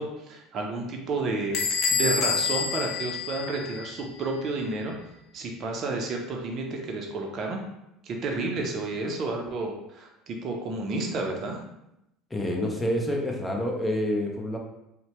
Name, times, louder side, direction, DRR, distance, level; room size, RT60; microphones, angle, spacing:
voice 1, 0.0-4.9 5.3-7.6 8.0-11.6, right 3 dB, 50° right, 1 dB, 0.5 m, -31 dB
Bell / Door, 1.5-4.0, left 5 dB, 60° left, 0.4 m, -27 dB
voice 2, 12.3-14.6, left 1 dB, 15° left, 0 dB, 0.6 m, -27 dB
2.7 x 2.1 x 3.0 m, 0.85 s
hypercardioid pair, 75°, 0 cm